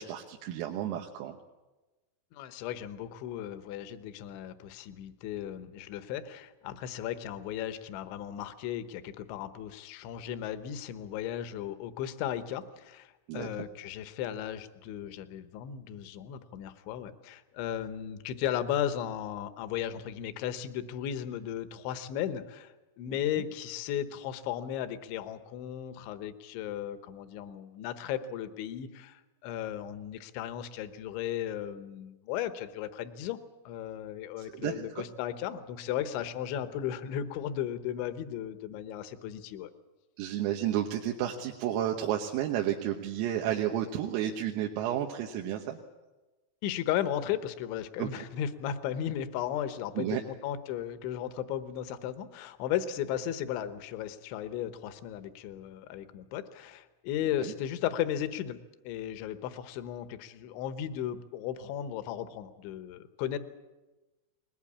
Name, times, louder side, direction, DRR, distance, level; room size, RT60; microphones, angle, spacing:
voice 1, 0.0-1.4 13.3-13.5 34.4-35.0 40.2-45.8 48.0-48.1 50.0-50.2 57.4-57.5, right 11 dB, 90° right, 2 dB, 3.8 m, -32 dB
voice 2, 2.3-33.4 33.7-39.7 46.6-58.6 58.8-63.4, left 10 dB, 75° left, 11 dB, 3.1 m, -35 dB
21.0 x 20.5 x 8.6 m, 1.1 s
omnidirectional pair, 5.9 m